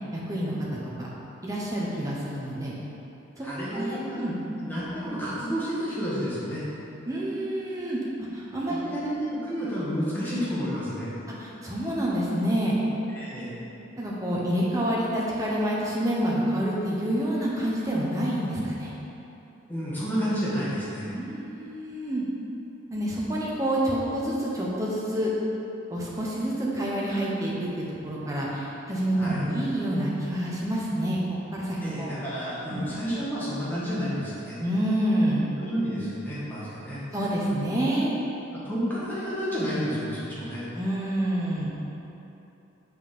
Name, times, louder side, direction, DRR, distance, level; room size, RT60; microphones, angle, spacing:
voice 1, 0.1-1.1 1.4-2.7 3.4-3.5 3.7-4.4 7.1-8.0 8.3-8.8 11.4-12.8 14.0-18.9 21.1-22.2 22.9-25.3 25.9-31.2 31.5-32.1 32.7-32.8 34.6-35.5 37.1-38.1 40.7-41.7, right 1 dB, 15° right, -5 dB, 1.1 m, -28 dB
voice 2, 3.4-4.2 4.5-6.6 8.7-11.1 13.1-13.5 19.7-21.1 29.2-29.4 31.8-34.6 35.5-37.0 38.5-40.6, equal, 10° left, -9 dB, 1.7 m, -30 dB
6.3 x 5.4 x 5.4 m, 3.0 s
head